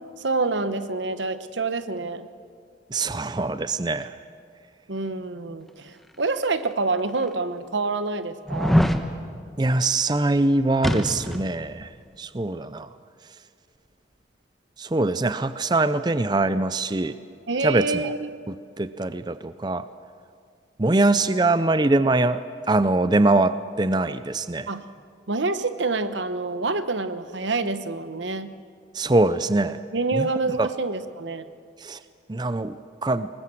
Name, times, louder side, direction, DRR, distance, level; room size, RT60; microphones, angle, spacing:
voice 1, 0.2-2.3 4.9-8.8 17.5-18.4 24.7-24.8 25.3-28.5 29.9-31.5, right 3 dB, 80° right, 11 dB, 1.1 m, -27 dB
voice 2, 2.9-4.2 9.6-11.9 12.2-12.9 14.8-17.2 17.6-18.1 18.8-19.8 20.8-22.4 22.7-24.7 28.9-29.8 30.1-30.3 30.6-30.7 31.8-32.0 32.3-33.3, right 2 dB, 25° right, 13 dB, 0.5 m, -23 dB
sound 1, 6.5-6.6 7.3-7.4 8.5-9.0 10.8-11.5 11.8-11.9, equal, ahead, 1.1 m, -22 dB
25.0 x 20.5 x 7.7 m, 2.3 s
head